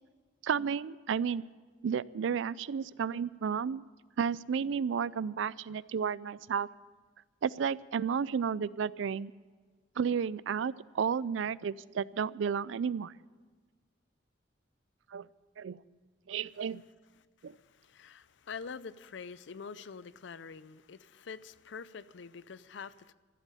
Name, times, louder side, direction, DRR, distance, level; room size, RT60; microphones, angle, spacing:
voice 1, 0.4-1.5 1.8-3.8 4.2-6.7 7.4-9.3 10.0-13.1 15.1-15.3 15.6-15.8 16.3-16.8 17.4-17.5, right 7 dB, 75° right, 20 dB, 0.4 m, -32 dB
voice 2, 17.2-23.1, left 5 dB, 65° left, 17 dB, 0.5 m, -46 dB
14.0 x 8.2 x 9.8 m, 1.4 s
head